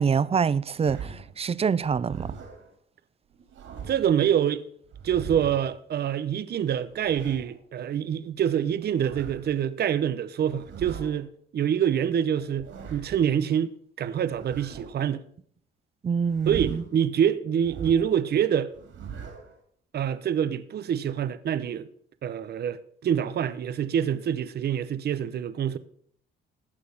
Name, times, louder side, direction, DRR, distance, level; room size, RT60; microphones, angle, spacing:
voice 1, 0.0-2.3 16.0-16.8, right 6 dB, 30° right, 0.5 m, -25 dB
sound 1, 0.8-1.4 1.8-2.7 3.3-4.1 4.9-5.8 6.7-7.6 8.7-9.5 10.4-11.2 12.4-13.2 14.3-15.1 16.2-17.0 17.6-18.2 18.7-19.6, right 7 dB, 75° right, 3.3 m, -41 dB
voice 2, 3.9-4.6 5.0-13.7 14.0-15.2 16.5-18.7 19.9-21.9 22.2-25.8, right 9 dB, 55° right, 0.8 m, -26 dB
16.0 x 6.4 x 5.6 m
cardioid pair, 90°, 20 cm